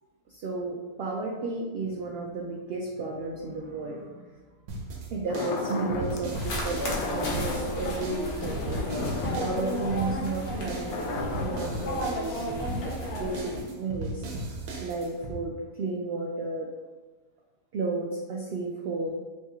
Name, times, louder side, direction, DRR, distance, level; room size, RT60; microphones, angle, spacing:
voice 1, 0.3-4.5 5.1-8.9 9.4-14.2 14.8-16.7 17.7-19.1, right 3 dB, 70° right, -2 dB, 0.5 m, -33 dB
sound 1, 4.7-15.4, right 2 dB, 90° right, 1.2 m, -37 dB
sound 2, 5.3-6.3 6.7-12.0, left 3 dB, 65° left, 0.7 m, -35 dB
sound 3, 6.3-13.6, left 1 dB, 90° left, 1.3 m, -33 dB
3.2 x 2.9 x 3.4 m, 1.3 s
omnidirectional pair, 1.5 m